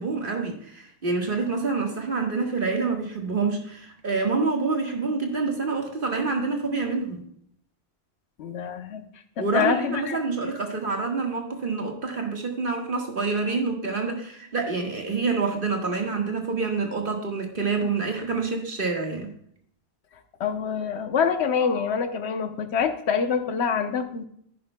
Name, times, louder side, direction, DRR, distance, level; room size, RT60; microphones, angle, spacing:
voice 1, 0.0-7.2 9.4-19.3, right 4 dB, 50° right, 2 dB, 1.7 m, -27 dB
voice 2, 8.4-9.0 9.4-10.2 20.4-24.2, left 6 dB, 75° left, 8 dB, 1.1 m, -26 dB
10.5 x 9.8 x 2.2 m, 0.65 s
omnidirectional pair, 1.1 m